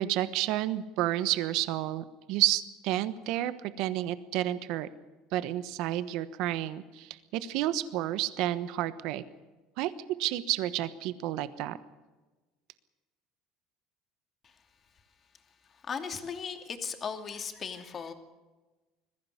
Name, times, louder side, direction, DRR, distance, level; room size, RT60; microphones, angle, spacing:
voice 1, 0.0-4.9 5.3-9.2 9.8-9.9 10.2-11.8, right 14 dB, 65° right, 14 dB, 1.2 m, -30 dB
voice 2, 15.9-18.1, left 6 dB, 30° left, 7 dB, 2.6 m, -37 dB
21.0 x 15.0 x 9.8 m, 1.2 s
cardioid pair, 130°, 0 cm